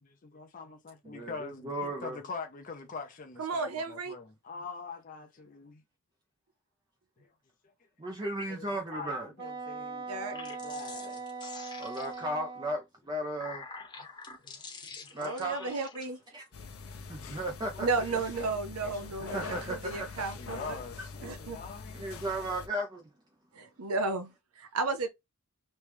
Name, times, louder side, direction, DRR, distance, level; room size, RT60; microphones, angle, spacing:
voice 1, 0.0-5.8 7.2-7.3 8.5-9.1 9.4-11.2 14.4-14.6 17.7-18.2 18.7-19.4 20.4-22.3, left 4 dB, 35° left, 0.6 m, -44 dB
voice 2, 1.0-2.2 8.0-9.3 11.8-13.6 15.1-15.7 16.3-16.4 17.1-17.9 19.3-20.1 21.0-21.1 21.9-23.1, right 1 dB, 20° right, 0.5 m, -35 dB
voice 3, 3.4-4.2 10.1-10.4 15.2-16.2 17.8-20.8 21.2-21.6 23.5-25.1, right 3 dB, 80° right, 0.7 m, -33 dB
Wind instrument woodwind instrument, 9.4-12.8, right 4 dB, 45° right, 1.5 m, -40 dB
sound 1, 10.2-12.4 13.1-16.1, left 4 dB, 20° left, 0.9 m, -46 dB
sound 2, 16.5-22.7, left 4 dB, 75° left, 0.8 m, -44 dB
3.1 x 3.1 x 3.3 m
head